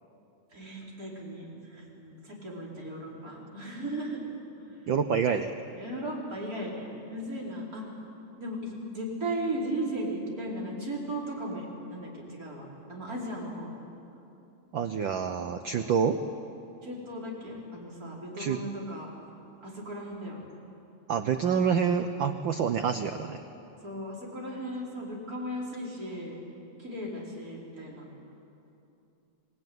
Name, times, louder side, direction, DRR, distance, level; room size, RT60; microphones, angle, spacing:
voice 1, 0.5-4.2 5.7-7.9 8.4-13.7 16.8-19.1 19.6-20.4 23.8-26.4 26.8-28.1, right 1 dB, 30° right, -4 dB, 5.2 m, -36 dB
voice 2, 4.9-5.5 14.7-16.2 18.4-18.6 21.1-23.4, right 7 dB, 90° right, 8 dB, 1.0 m, -27 dB
27.0 x 19.5 x 9.5 m, 2.8 s
omnidirectional pair, 3.3 m